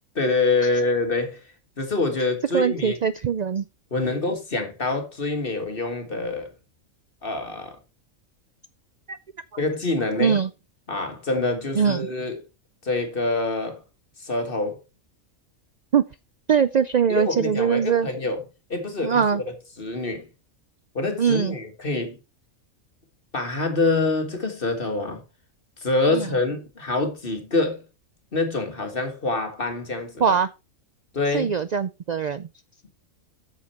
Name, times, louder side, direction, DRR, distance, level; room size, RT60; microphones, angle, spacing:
voice 1, 0.2-1.4 1.8-3.0 3.9-6.5 7.2-7.8 9.6-10.4 10.9-12.4 12.8-13.8 14.2-14.8 17.1-18.4 18.7-19.4 19.8-20.3 21.0-22.2 23.3-25.2 25.8-27.8 28.3-30.2 31.1-31.5, left 3 dB, 45° left, 1.8 m, -26 dB
voice 2, 2.5-3.7 9.1-9.2 10.2-10.5 11.8-12.1 15.9-16.0 16.5-18.1 19.0-19.4 21.2-21.6 26.1-26.3 30.2-30.5 31.3-32.5, right 7 dB, 80° right, 0.3 m, -22 dB
8.6 x 6.7 x 4.3 m
omnidirectional pair, 1.4 m